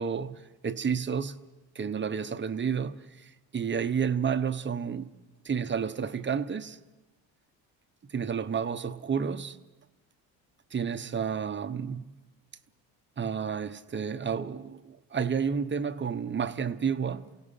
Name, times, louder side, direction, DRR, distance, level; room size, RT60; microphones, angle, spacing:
voice 1, 0.0-1.4 1.7-5.1 5.4-6.8 8.1-9.6 10.7-12.1 13.2-17.3, right 6 dB, 25° right, 0.9 m, -31 dB
28.5 x 17.0 x 5.8 m
supercardioid pair, 85°, 42 cm